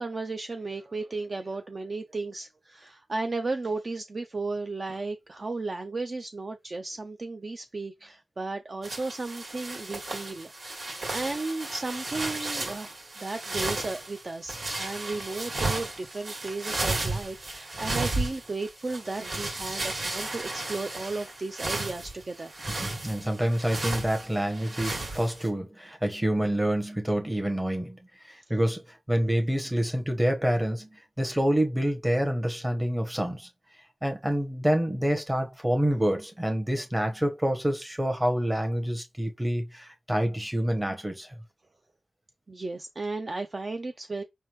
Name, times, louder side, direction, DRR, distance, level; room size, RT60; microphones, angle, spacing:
voice 1, 0.0-22.6 28.4-28.5 42.5-44.2, right 3 dB, 35° right, 0.4 m, -34 dB
sound 1, 8.8-25.5, right 2 dB, 50° right, 1.8 m, -34 dB
voice 2, 22.7-28.0 28.3-33.5 34.0-41.3, equal, 10° right, 1.0 m, -27 dB
5.3 x 3.4 x 3.0 m
wide cardioid pair, 165°, 0 cm